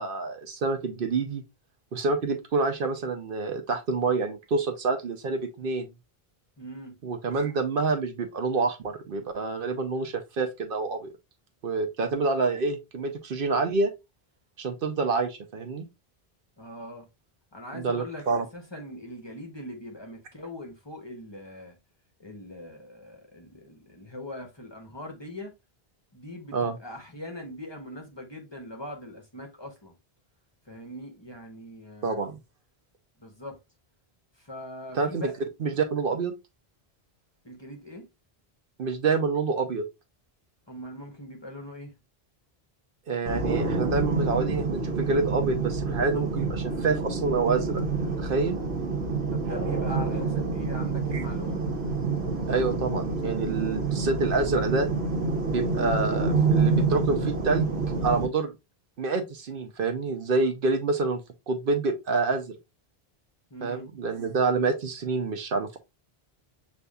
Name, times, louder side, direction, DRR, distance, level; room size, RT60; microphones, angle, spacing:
voice 1, 0.0-1.4 1.9-5.9 7.0-11.1 11.6-13.9 14.6-15.9 17.7-18.4 26.5-26.8 32.0-32.4 34.9-35.2 35.6-36.3 38.8-39.8 43.1-47.8 48.2-48.6 51.1-51.2 52.5-54.9 55.5-57.7 58.0-58.5 59.0-61.2 61.5-62.5 63.6-65.8, right 4 dB, 65° right, 0.8 m, -27 dB
voice 2, 6.6-7.0 16.6-17.1 17.5-21.8 22.2-25.5 26.1-29.9 30.7-32.3 33.2-33.6 34.4-35.3 37.4-38.1 40.7-41.9 49.3-51.6 63.5-63.9, left 1 dB, 30° left, 0.8 m, -41 dB
sound 1, 43.3-58.3, right 4 dB, 85° right, 1.1 m, -27 dB
6.7 x 2.6 x 2.3 m
omnidirectional pair, 1.0 m